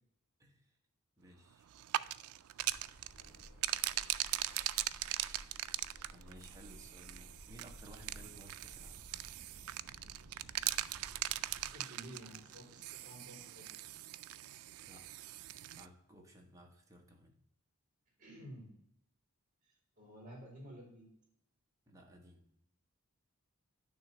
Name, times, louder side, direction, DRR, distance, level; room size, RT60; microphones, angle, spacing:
voice 1, 0.4-0.8 1.2-1.7 6.1-9.1 14.8-17.3 21.9-22.5, equal, 15° right, 1 dB, 1.2 m, -58 dB
sound 1, 1.7-15.9, right 15 dB, 80° right, 0.3 m, -40 dB
sound 2, 2.6-11.8, equal, 35° left, 2.0 m, -60 dB
sound 3, 3.1-9.0, equal, 85° left, 1.4 m, -57 dB
voice 2, 11.5-13.7 18.2-18.7 19.6-21.1, equal, 35° right, 0 dB, 3.0 m, -52 dB
9.4 x 3.2 x 6.6 m, 0.74 s
head